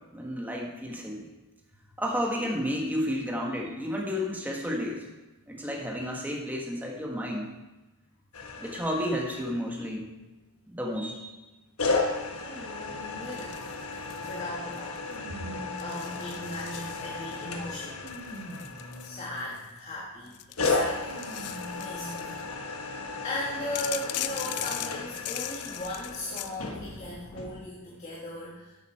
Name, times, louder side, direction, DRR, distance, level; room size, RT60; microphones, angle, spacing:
voice 1, 0.1-1.3 2.0-5.1 5.5-7.5 8.6-10.1 10.7-11.3, equal, 10° right, -1 dB, 1.5 m, -31 dB
sound 1, 8.3-9.9 11.8-19.6 20.6-27.6, left 3 dB, 75° left, 1.2 m, -35 dB
voice 2, 12.5-13.8 14.2-15.0 15.8-18.0 19.0-21.2 21.8-22.3 22.7-28.8, left 1 dB, 30° left, -5 dB, 1.5 m, -38 dB
sound 2, 13.3-14.4 14.7-15.2 15.8-17.4 18.1-19.8 20.3-22.4 23.8-26.6, left 13 dB, 90° left, 0.5 m, -39 dB
sound 3, 15.1-17.1 17.7-19.7 20.9-22.3 23.0-23.1 24.3-24.4, right 1 dB, 55° right, 3.8 m, -44 dB
11.0 x 8.3 x 4.4 m, 1.1 s
head